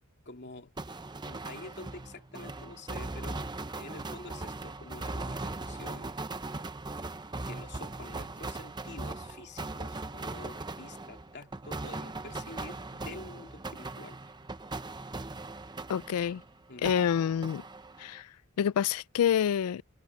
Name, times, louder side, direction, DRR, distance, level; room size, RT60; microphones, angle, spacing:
voice 1, 0.2-0.7 1.2-6.1 7.4-14.3 16.7-17.0, left 2 dB, 50° left, 2.8 m, -48 dB
sound 1, 0.8-16.5 16.8-18.2, right 2 dB, 20° right, 0.7 m, -39 dB
voice 2, 15.9-16.4 16.8-17.6 18.0-18.3 18.6-19.8, left 8 dB, 85° left, 0.3 m, -27 dB
head